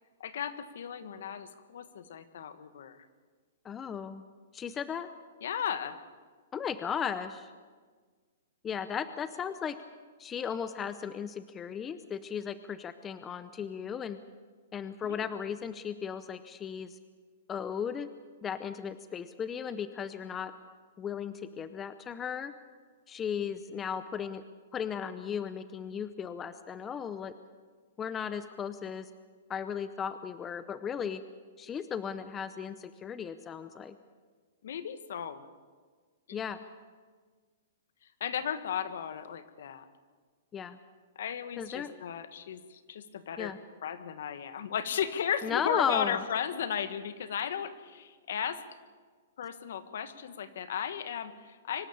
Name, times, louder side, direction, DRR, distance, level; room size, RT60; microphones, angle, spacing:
voice 1, 0.2-3.1 5.4-6.0 15.0-15.5 34.6-35.4 36.3-36.4 38.2-39.9 41.1-43.5 43.8-48.6 49.4-51.9, left 8 dB, 65° left, 12 dB, 1.5 m, -35 dB
voice 2, 3.6-4.2 4.5-5.1 6.5-7.5 8.6-9.8 10.2-14.2 14.7-17.0 17.5-18.1 18.4-20.5 21.0-22.5 23.1-24.4 24.7-27.3 28.0-29.1 29.5-31.2 31.6-34.0 36.3-36.6 40.5-40.8 41.6-41.9 43.4-43.6 45.4-46.2, left 7 dB, 15° left, 12 dB, 0.6 m, -36 dB
24.5 x 12.5 x 8.7 m, 1.5 s
hypercardioid pair, 160°, 0 cm